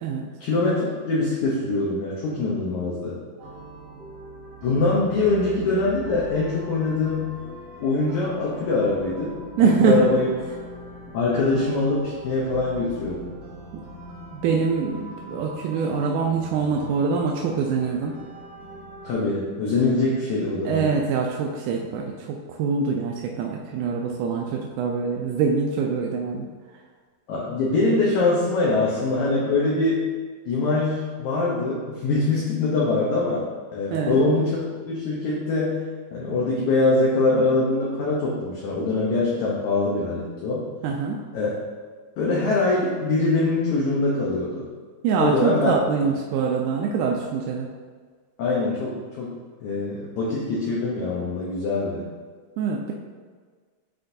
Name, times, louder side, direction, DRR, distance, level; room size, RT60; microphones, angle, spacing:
voice 1, 0.4-3.2 4.6-7.4 7.8-10.3 11.1-13.3 19.0-20.9 27.3-30.1 30.5-33.5 33.7-34.6 34.9-35.9 36.1-40.7 41.3-41.6 42.2-44.7 45.2-45.8 48.4-49.3 49.6-52.1, left 3 dB, 70° left, -5 dB, 2.0 m, -23 dB
sound 1, 3.4-19.1, right 1 dB, 60° right, 1.7 m, -41 dB
voice 2, 9.6-10.0 14.3-18.1 20.7-26.5 33.9-34.2 40.8-41.2 45.0-47.7 52.6-52.9, right 5 dB, 80° right, -1 dB, 1.9 m, -24 dB
9.9 x 3.8 x 2.6 m, 1.5 s
omnidirectional pair, 3.9 m